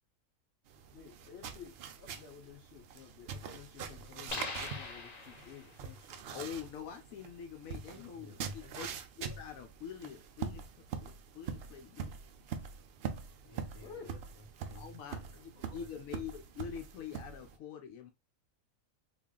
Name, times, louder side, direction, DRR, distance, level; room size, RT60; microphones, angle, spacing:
sound 1, 0.7-17.6, right 6 dB, 65° right, 0.6 m, -44 dB
voice 1, 0.9-6.2 13.8-14.1, left 7 dB, 60° left, 1.1 m, -52 dB
sound 2, 4.3-5.8, left 3 dB, 40° left, 0.6 m, -42 dB
voice 2, 6.3-8.3 8.7-8.9 9.2-10.6 11.0-12.1 14.8-15.2 15.7-18.1, left 8 dB, 85° left, 1.0 m, -45 dB
voice 3, 7.9-8.9 13.4-16.0, left 1 dB, 20° left, 2.1 m, -56 dB
3.5 x 2.4 x 3.7 m
omnidirectional pair, 1.4 m